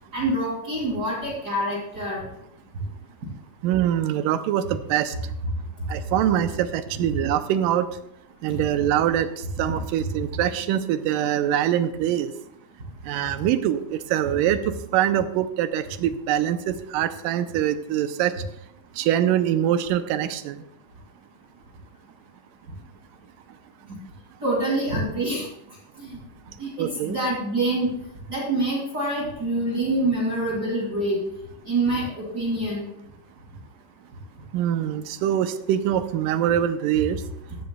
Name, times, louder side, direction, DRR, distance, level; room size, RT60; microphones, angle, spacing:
voice 1, 0.1-2.2 24.4-25.5 26.0-26.1 26.6-27.9 28.3-31.2 31.7-32.8, right 1 dB, 30° right, -5 dB, 2.7 m, -26 dB
voice 2, 3.6-5.1 5.9-7.9 8.4-12.3 13.1-18.3 19.0-20.6 26.8-27.2 34.5-37.2, right 11 dB, 85° right, 11 dB, 2.3 m, -24 dB
14.5 x 12.0 x 2.2 m, 0.81 s
omnidirectional pair, 3.9 m